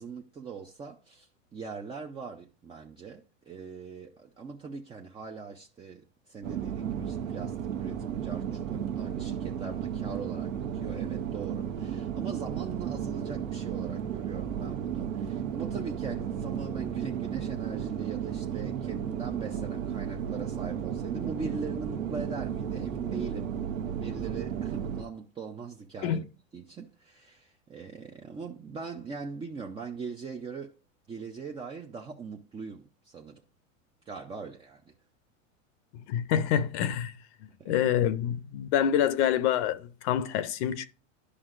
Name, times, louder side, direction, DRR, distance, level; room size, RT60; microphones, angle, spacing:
voice 1, 0.0-23.5 23.9-26.3 26.5-30.8 31.1-33.4 34.1-34.9 37.6-37.7, right 5 dB, 15° right, 0.4 m, -41 dB
sound 1, 6.4-25.0, right 8 dB, 75° right, 1.0 m, -34 dB
voice 2, 36.1-37.1 37.7-40.9, left 9 dB, 60° left, 0.7 m, -26 dB
11.0 x 5.4 x 2.5 m
hypercardioid pair, 105°, 40 cm